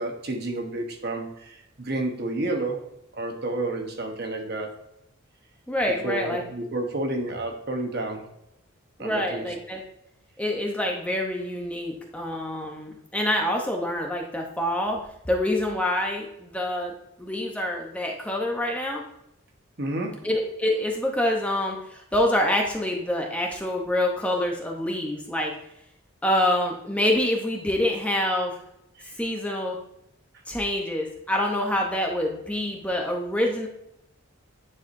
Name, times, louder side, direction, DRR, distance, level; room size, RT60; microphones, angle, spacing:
voice 1, 0.0-2.8 3.1-4.7 6.0-8.3 9.0-9.5 19.8-20.3 29.0-29.1, right 2 dB, 50° right, 3 dB, 1.1 m, -30 dB
voice 2, 5.7-6.4 9.0-9.8 10.4-15.0 15.3-16.9 17.2-19.0 20.2-25.5 26.2-28.5 29.2-29.8 30.5-33.7, left 1 dB, 5° left, 1 dB, 0.7 m, -26 dB
9.6 x 4.8 x 2.6 m, 0.78 s
head